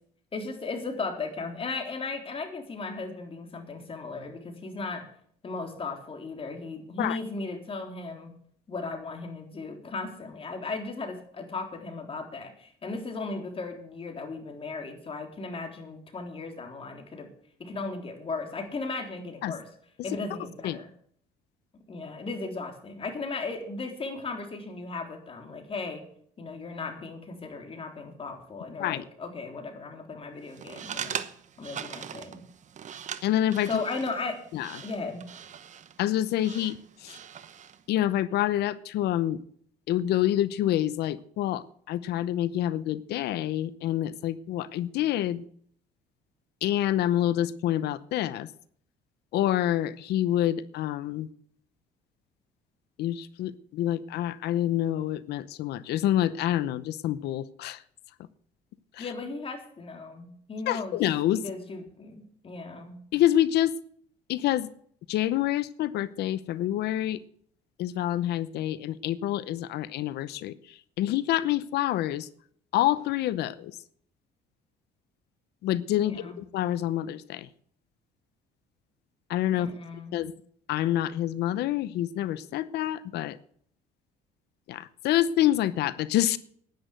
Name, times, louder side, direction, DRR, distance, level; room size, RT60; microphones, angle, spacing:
voice 1, 0.3-5.0 5.4-8.3 8.7-17.3 17.6-19.7 20.0-20.9 21.9-26.0 26.4-31.2 31.6-32.4 33.7-34.4 34.8-35.2 59.0-61.0 61.4-63.0 76.0-76.4 79.5-80.2, left 3 dB, 35° left, 4 dB, 3.6 m, -36 dB
sound 1, 30.5-37.8, right 8 dB, 45° right, 1.0 m, -41 dB
voice 2, 33.2-33.8 34.5-34.8 36.0-37.2 37.9-39.4 39.9-45.4 46.6-48.5 49.3-51.3 53.0-57.8 58.9-59.1 60.7-61.4 63.1-63.7 64.3-64.7 65.1-67.2 67.8-72.3 72.7-73.7 75.6-77.5 79.3-79.7 80.1-80.3 80.7-83.4 84.7-86.4, left 12 dB, 75° left, 17 dB, 0.8 m, -27 dB
10.5 x 10.5 x 7.8 m, 0.62 s
cardioid pair, 110°, 17 cm